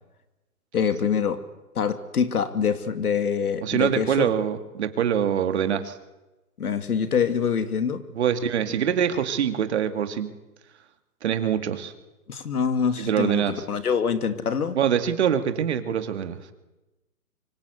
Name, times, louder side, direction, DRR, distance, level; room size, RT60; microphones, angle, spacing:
voice 1, 0.7-1.4 1.7-4.3 6.6-8.0 12.3-14.8, left 7 dB, 70° left, 9 dB, 2.8 m, -25 dB
voice 2, 3.6-6.0 8.2-10.3 11.2-11.9 13.0-13.6 14.7-16.4, right 8 dB, 45° right, 9 dB, 2.4 m, -24 dB
25.0 x 24.5 x 8.3 m, 1.0 s
hypercardioid pair, 160°, 46 cm